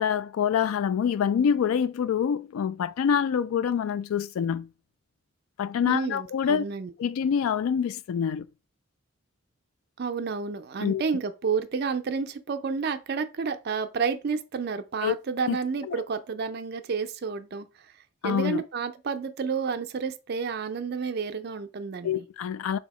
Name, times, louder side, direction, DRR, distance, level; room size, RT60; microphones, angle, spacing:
voice 1, 0.0-4.7 5.6-6.6 7.0-8.5 10.8-11.0 15.0-15.1 15.5-15.6 15.8-16.0 18.2-18.6 22.0-22.8, left 7 dB, 90° left, 0.3 m, -26 dB
voice 2, 5.9-6.9 10.0-17.7 18.2-22.2, right 5 dB, 50° right, 0.4 m, -30 dB
3.4 x 2.8 x 4.1 m
head